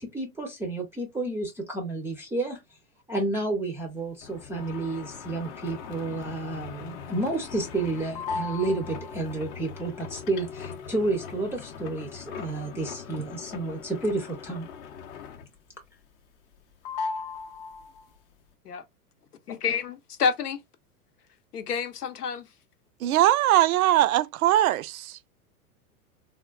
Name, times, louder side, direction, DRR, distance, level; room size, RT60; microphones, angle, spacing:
voice 1, 0.0-2.6 3.1-14.7, right 2 dB, 5° right, 0.4 m, -31 dB
sound 1, 4.2-15.7 16.0-16.6 16.8-18.1, left 5 dB, 40° left, 0.6 m, -39 dB
voice 2, 19.5-20.6 21.5-22.5, left 6 dB, 90° left, 0.8 m, -28 dB
voice 3, 23.0-25.2, right 13 dB, 70° right, 0.5 m, -21 dB
3.5 x 2.3 x 2.3 m
hypercardioid pair, 105°, 45 cm